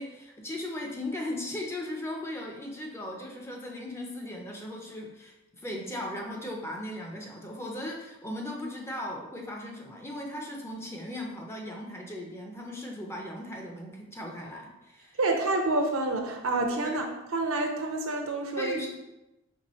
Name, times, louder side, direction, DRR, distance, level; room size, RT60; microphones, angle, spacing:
voice 1, 0.0-15.2 16.9-17.0 18.6-18.9, left 1 dB, 10° left, 0 dB, 0.5 m, -37 dB
voice 2, 15.2-17.1 17.3-18.8, right 2 dB, 75° right, 4 dB, 0.6 m, -28 dB
4.4 x 3.3 x 3.0 m, 1.0 s
head